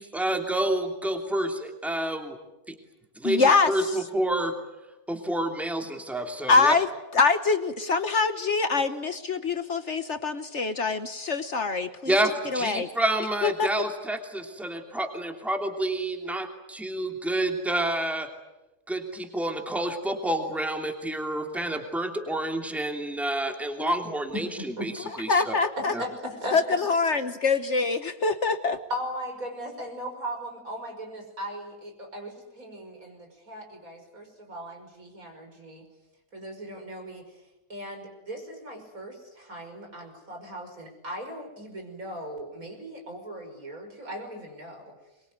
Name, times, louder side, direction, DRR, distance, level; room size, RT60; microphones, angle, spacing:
voice 1, 0.0-2.4 2.7-2.8 3.2-4.5 5.1-6.7 12.1-18.3 18.9-24.5 24.8-24.9 25.2-25.5 25.9-26.0, right 1 dB, ahead, 4 dB, 2.8 m, -29 dB
voice 2, 3.2-4.0 6.5-12.2 12.5-12.9 13.4-13.7 23.8-23.9 25.3-25.9 26.5-28.8, left 4 dB, 50° left, 10 dB, 1.4 m, -24 dB
voice 3, 24.3-24.9 25.8-26.9 28.9-35.8 36.3-37.4 37.7-44.9, equal, 65° right, 3 dB, 6.2 m, -38 dB
23.5 x 23.0 x 9.5 m, 0.98 s
omnidirectional pair, 1.6 m